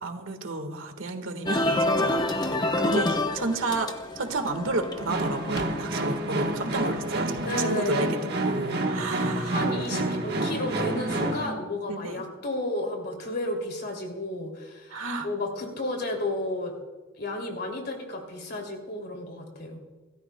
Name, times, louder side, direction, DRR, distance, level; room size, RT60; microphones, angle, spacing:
voice 1, 0.0-8.2 8.4-10.1 11.9-12.2 14.9-15.3, right 3 dB, 70° right, 6 dB, 1.6 m, -32 dB
sound 1, 1.5-7.8, left 1 dB, 20° left, 0.9 m, -29 dB
sound 2, 5.1-11.5, right 1 dB, 50° right, 1.4 m, -29 dB
voice 2, 7.4-8.2 9.3-16.7 17.2-19.8, left 1 dB, 50° left, 2 dB, 2.8 m, -32 dB
27.0 x 13.5 x 2.3 m, 1.2 s
head